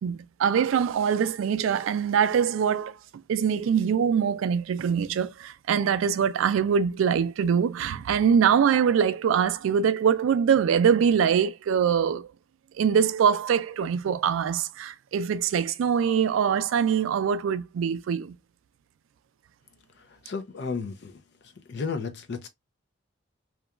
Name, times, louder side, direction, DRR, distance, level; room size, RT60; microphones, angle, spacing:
voice 1, 0.0-3.0 3.3-12.3 12.8-18.4, right 7 dB, 75° right, 0.3 m, -23 dB
voice 2, 20.2-21.2 21.7-22.5, left 4 dB, 55° left, 0.5 m, -33 dB
2.9 x 2.2 x 2.3 m
head